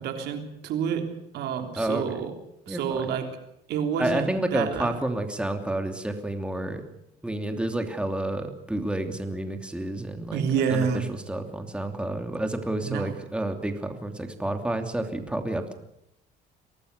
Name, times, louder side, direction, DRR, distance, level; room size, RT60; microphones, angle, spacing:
voice 1, 0.0-2.4 2.7-3.4 3.7-4.9 10.3-11.1 12.8-13.1, right 7 dB, 80° right, 6 dB, 3.4 m, -28 dB
voice 2, 1.8-2.3 2.7-3.2 4.0-6.8 7.2-15.7, right 1 dB, 5° right, 5 dB, 2.9 m, -30 dB
24.0 x 18.5 x 6.8 m, 0.81 s
cardioid pair, 110°, 17 cm